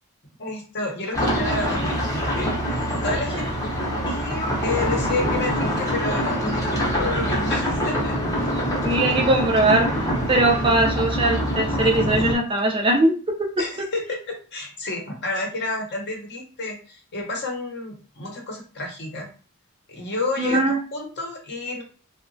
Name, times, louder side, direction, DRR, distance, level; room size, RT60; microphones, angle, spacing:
voice 1, 0.4-3.5 4.1-8.1 13.6-19.3 19.9-21.8, left 2 dB, 50° left, 1 dB, 0.8 m, -30 dB
sound 1, 1.1-12.3, equal, 15° left, 0.7 m, -24 dB
voice 2, 8.8-9.9 10.3-13.1 13.4-13.5 20.4-20.8, right 2 dB, 25° right, 1 dB, 0.4 m, -20 dB
2.8 x 2.1 x 2.5 m, 0.37 s
head